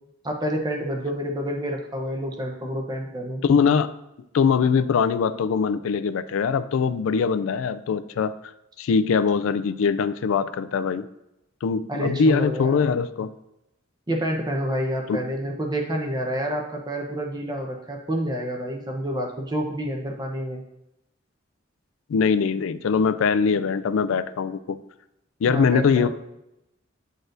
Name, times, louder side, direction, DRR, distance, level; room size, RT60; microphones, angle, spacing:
voice 1, 0.2-3.4 11.9-12.9 14.1-20.6 25.4-26.1, equal, 20° right, 1 dB, 0.8 m, -28 dB
voice 2, 3.4-3.9 4.3-8.3 8.8-11.1 11.6-13.3 15.1-15.2 22.1-24.8 25.4-26.1, left 5 dB, 90° left, 13 dB, 0.3 m, -22 dB
9.0 x 4.0 x 2.6 m, 0.88 s
head